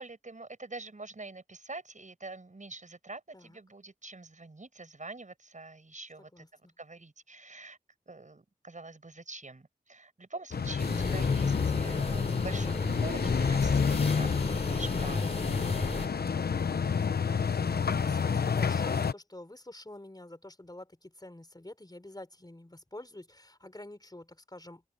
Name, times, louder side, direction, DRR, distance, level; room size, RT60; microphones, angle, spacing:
voice 1, 0.0-6.4 6.8-7.8 8.1-15.4, right 3 dB, 50° right, 6.7 m, -45 dB
voice 2, 6.3-6.7 17.6-24.9, left 1 dB, 25° left, 5.1 m, -48 dB
sound 1, 10.5-19.1, left 6 dB, 85° left, 0.9 m, -29 dB
sound 2, 10.8-16.1, left 2 dB, 40° left, 3.5 m, -34 dB
open air
cardioid pair, 45°, 16 cm